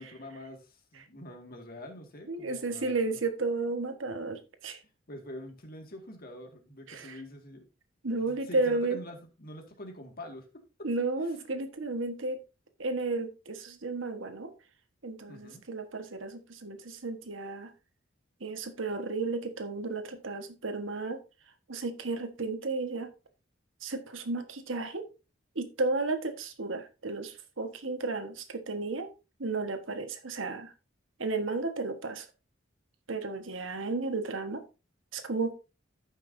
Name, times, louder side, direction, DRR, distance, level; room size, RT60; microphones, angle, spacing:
voice 1, 0.0-3.2 5.1-7.6 8.1-10.9 11.2-11.4 15.3-15.6, left 1 dB, 50° left, 3 dB, 2.0 m, -46 dB
voice 2, 2.3-4.8 6.9-7.2 8.0-9.0 10.8-12.4 12.8-14.5 15.0-17.7 18.4-21.2 21.7-23.1 23.8-25.1 25.5-29.1 29.4-30.7 31.2-32.3 33.1-34.6 35.1-35.5, right 3 dB, 90° right, 7 dB, 1.4 m, -33 dB
14.0 x 5.8 x 2.7 m, 0.29 s
head